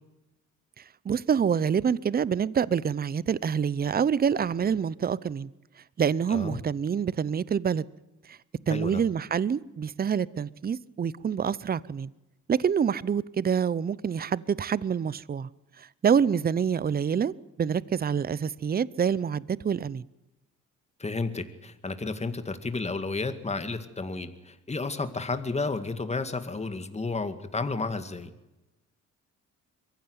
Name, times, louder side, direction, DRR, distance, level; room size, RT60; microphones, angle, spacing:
voice 1, 1.0-5.5 6.0-7.9 8.3-8.4 8.7-12.1 12.5-15.5 15.8-17.3 17.6-20.0, right 7 dB, 30° right, 21 dB, 0.7 m, -26 dB
voice 2, 8.7-9.0 21.0-28.3, left 3 dB, 20° left, 10 dB, 2.1 m, -32 dB
23.0 x 15.5 x 9.6 m, 0.99 s
cardioid pair, 90°, 30 cm